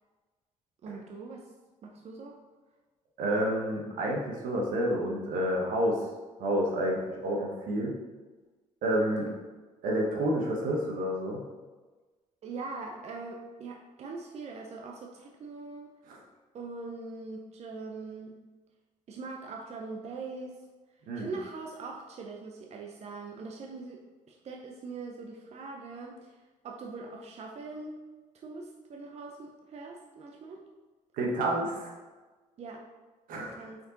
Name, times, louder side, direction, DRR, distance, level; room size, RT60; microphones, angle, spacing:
voice 1, 0.8-1.5 1.8-2.4 9.1-9.3 12.4-15.9 16.5-18.4 19.1-20.6 21.2-24.0 24.3-26.4 26.6-28.0 28.3-30.6 32.6-32.8 33.4-33.8, right 3 dB, 50° right, 1 dB, 0.7 m, -42 dB
voice 2, 3.2-6.0 6.4-7.9 8.8-9.2 9.8-11.4 16.1-16.2 21.1-21.3 31.1-31.9 33.3-33.7, right 1 dB, 85° right, -1 dB, 1.3 m, -29 dB
5.4 x 4.5 x 3.9 m, 1.3 s
cardioid pair, 90°, 14 cm